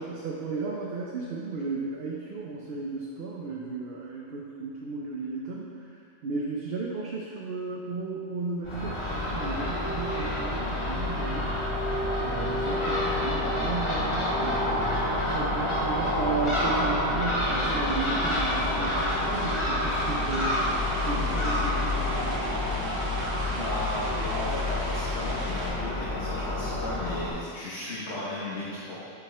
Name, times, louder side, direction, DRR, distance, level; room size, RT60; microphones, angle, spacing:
voice 1, 0.0-5.9 6.2-11.5 12.2-22.5, right 4 dB, 60° right, -2 dB, 0.8 m, -34 dB
Crow / Gull seagull, 8.6-27.3, left 1 dB, 25° left, 0.9 m, -28 dB
sound 1, 17.5-25.7, right 1 dB, 75° right, 1.4 m, -40 dB
voice 2, 23.6-28.9, left 1 dB, 60° left, -9 dB, 1.4 m, -35 dB
7.5 x 4.8 x 3.3 m, 2.3 s
omnidirectional pair, 1.3 m